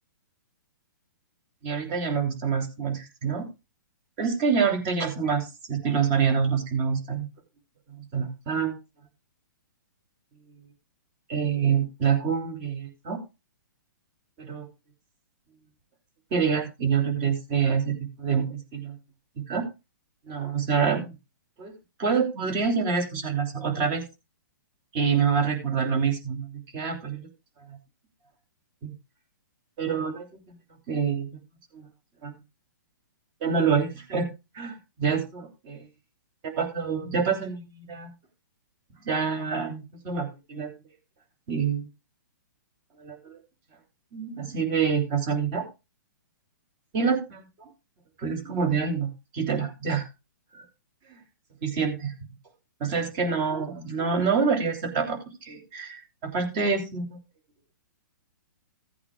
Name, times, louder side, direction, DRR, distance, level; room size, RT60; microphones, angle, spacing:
voice 1, 1.6-3.5 4.2-7.3 7.9-8.8 11.3-13.2 14.4-14.7 16.3-19.0 19.5-19.7 20.3-21.1 21.6-21.7 22.0-24.0 24.9-27.3 27.7-27.8 28.8-28.9 29.8-30.6 30.9-31.3 31.7-31.9 32.2-32.4 33.4-34.3 34.5-35.4 35.7-35.9 36.6-38.1 39.0-40.7 41.5-41.9 43.0-43.4 44.1-45.6 46.9-47.7 48.2-50.1 50.5-50.6 51.1-51.2 51.6-52.1 52.8-57.2, right 6 dB, 30° right, 4 dB, 2.9 m, -27 dB
16.0 x 8.5 x 2.3 m, 0.28 s
hypercardioid pair, 150°, 11 cm